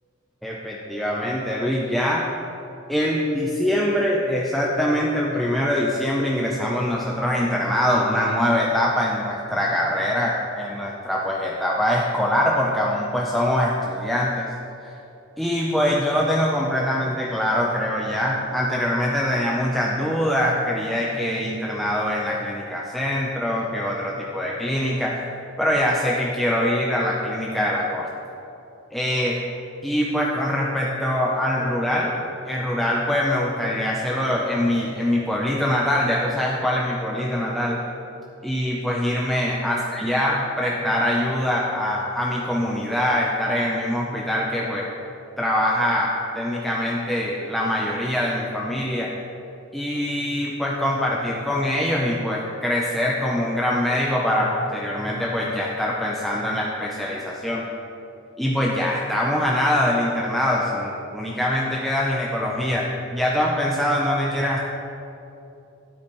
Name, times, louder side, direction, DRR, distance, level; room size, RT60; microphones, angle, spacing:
voice 1, 0.4-2.3 2.9-14.5 14.8-14.9 15.4-25.3 25.6-28.1 28.9-29.4 29.8-32.1 32.5-37.8 38.4-44.9 45.4-49.1 49.7-57.7 58.4-64.6, left 1 dB, ahead, -4 dB, 0.5 m, -23 dB
9.8 x 8.0 x 3.0 m, 2.8 s
head